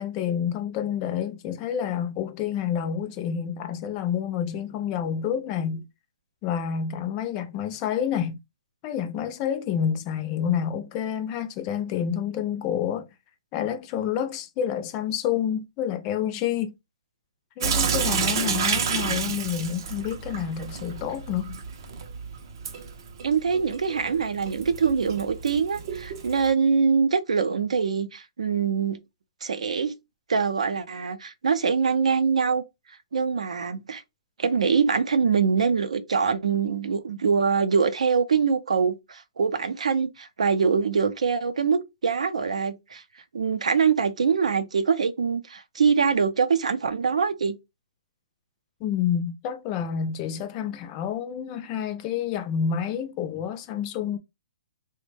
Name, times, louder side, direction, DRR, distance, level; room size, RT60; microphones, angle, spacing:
voice 1, 0.0-5.8 6.4-8.4 8.8-13.1 13.5-16.7 17.6-21.6 48.8-54.2, left 8 dB, 20° left, 0.4 m, -28 dB
Sink (filling or washing) / Drip, 17.6-26.5, right 6 dB, 40° right, 0.4 m, -30 dB
voice 2, 23.2-29.0 29.4-29.9 30.3-32.6 33.1-34.0 34.4-43.0 43.3-47.6, right 5 dB, 90° right, 0.5 m, -24 dB
3.1 x 2.1 x 3.2 m
hypercardioid pair, 170°, 3 cm